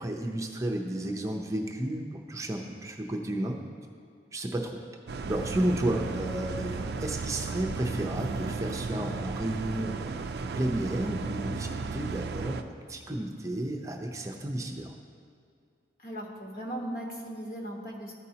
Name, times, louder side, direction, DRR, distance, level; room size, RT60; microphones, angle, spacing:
voice 1, 0.0-3.6 4.3-4.8 5.3-10.3 10.5-14.9, right 1 dB, 15° right, 2 dB, 0.6 m, -32 dB
sound 1, 5.1-12.6, right 4 dB, 60° right, 0.4 m, -35 dB
voice 2, 16.0-18.1, right 1 dB, 50° left, 0 dB, 1.1 m, -37 dB
13.5 x 5.3 x 2.8 m, 2.3 s
head